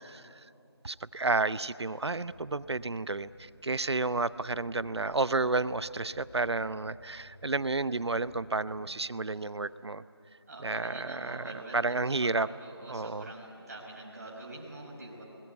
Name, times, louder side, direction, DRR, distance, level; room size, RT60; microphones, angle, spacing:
voice 1, 0.8-10.0 10.6-12.5 12.9-13.3, right 3 dB, 75° right, 16 dB, 0.8 m, -31 dB
sound 1, 2.0-9.5, equal, 20° left, 6.3 m, -57 dB
voice 2, 10.5-15.2, right 2 dB, 35° right, -2 dB, 5.4 m, -45 dB
28.0 x 21.0 x 8.3 m, 2.7 s
figure-of-eight pair, 170°, 14 cm